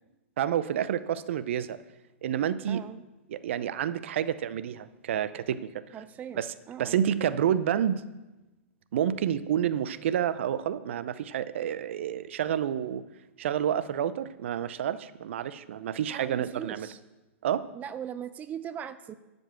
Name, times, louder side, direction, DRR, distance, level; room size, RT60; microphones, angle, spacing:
voice 1, 0.4-1.8 2.2-2.8 3.3-5.7 6.3-6.5 6.8-8.0 8.9-13.0 13.4-16.9 17.4-17.7, right 9 dB, 65° right, 15 dB, 0.6 m, -29 dB
voice 2, 2.7-3.0 5.9-7.0 16.1-17.0 17.7-19.1, right 8 dB, 20° right, 12 dB, 0.5 m, -40 dB
12.0 x 5.3 x 7.0 m, 1.1 s
hypercardioid pair, 110°, 7 cm